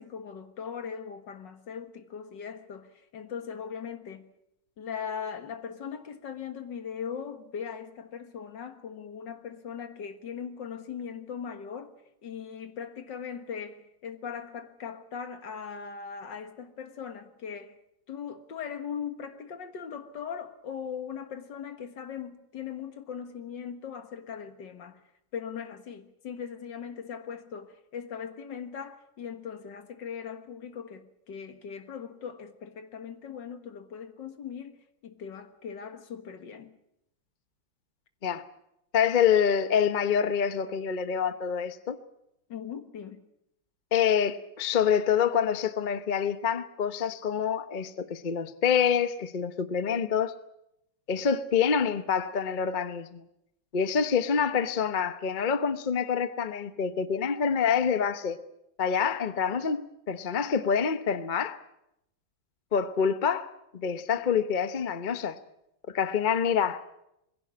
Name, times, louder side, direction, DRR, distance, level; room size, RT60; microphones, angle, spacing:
voice 1, 0.0-4.3 4.8-11.9 12.2-17.8 18.1-25.0 25.3-36.8 42.5-43.3, left 7 dB, 60° left, 2.1 m, -39 dB
voice 2, 38.9-42.0 43.9-50.3 51.1-53.2 53.7-58.4 58.8-61.6 62.7-63.5 63.7-65.4 65.9-66.8, left 7 dB, 45° left, 0.6 m, -26 dB
21.5 x 16.0 x 9.5 m
omnidirectional pair, 2.2 m